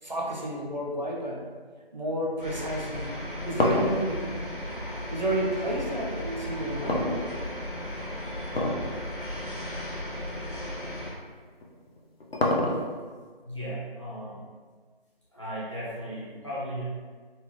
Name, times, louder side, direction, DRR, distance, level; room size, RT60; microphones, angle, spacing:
voice 1, 0.0-1.4 1.9-4.3 5.1-7.3, right 1 dB, 50° right, -3 dB, 0.6 m, -31 dB
sound 1, 2.4-11.1, left 1 dB, 60° left, 1.2 m, -36 dB
sound 2, 3.0-5.5 6.9-7.8 8.5-8.9 9.3-9.4 10.1-10.2 11.6-13.1, left 1 dB, 75° left, 0.7 m, -27 dB
voice 2, 13.4-14.4 15.3-16.8, equal, 30° left, -9 dB, 0.8 m, -36 dB
4.0 x 2.1 x 3.1 m, 1.5 s
figure-of-eight pair, 170°, 30 cm